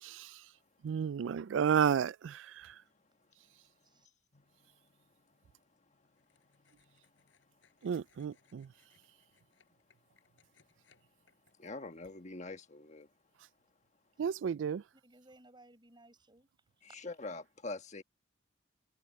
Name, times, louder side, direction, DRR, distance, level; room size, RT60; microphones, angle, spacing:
voice 1, 0.0-0.4 0.8-2.8 7.8-8.7 14.2-14.8, right 7 dB, 80° right, 0.3 m, -32 dB
voice 2, 4.3-4.8 5.3-5.4 6.4-7.3 11.6-13.1 16.9-18.0, left 3 dB, 40° left, 1.3 m, -45 dB
sound 1, 6.1-11.5, left 6 dB, 80° left, 4.7 m, -72 dB
voice 3, 14.9-17.0, right 2 dB, 25° right, 7.7 m, -61 dB
head